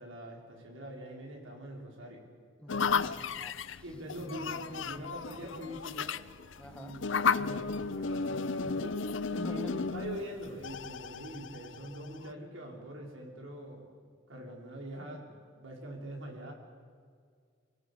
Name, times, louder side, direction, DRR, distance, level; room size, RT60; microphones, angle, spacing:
voice 1, 0.0-2.2 3.8-6.1 6.7-13.9 14.3-16.5, equal, 75° right, 0 dB, 5.3 m, -43 dB
voice 2, 2.6-3.8 6.6-7.0 9.3-9.7, equal, 5° left, 6 dB, 1.4 m, -45 dB
sound 1, 2.7-12.3, left 5 dB, 70° left, 0.7 m, -34 dB
25.5 x 18.5 x 8.7 m, 2.1 s
head